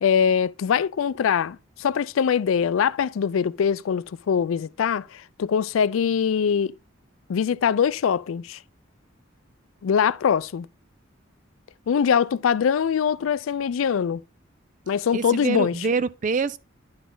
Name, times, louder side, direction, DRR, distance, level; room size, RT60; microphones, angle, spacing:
voice 1, 0.0-6.7 7.3-8.6 9.8-10.7 11.9-14.2 14.9-15.7, left 7 dB, 90° left, 0.4 m, -23 dB
voice 2, 15.1-16.6, right 4 dB, 40° right, 0.4 m, -25 dB
10.5 x 4.0 x 3.8 m
head